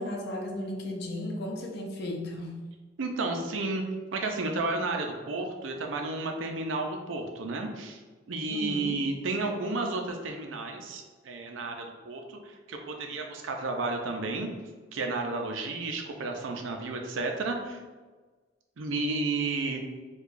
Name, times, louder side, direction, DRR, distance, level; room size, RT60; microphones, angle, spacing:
voice 1, 0.0-2.6 8.5-9.0, left 1 dB, 60° left, 1 dB, 0.6 m, -35 dB
voice 2, 3.0-3.8 4.1-8.0 8.3-14.5 14.9-17.8 18.8-19.8, right 3 dB, 85° right, 3 dB, 0.5 m, -32 dB
4.6 x 2.3 x 2.5 m, 1.3 s
head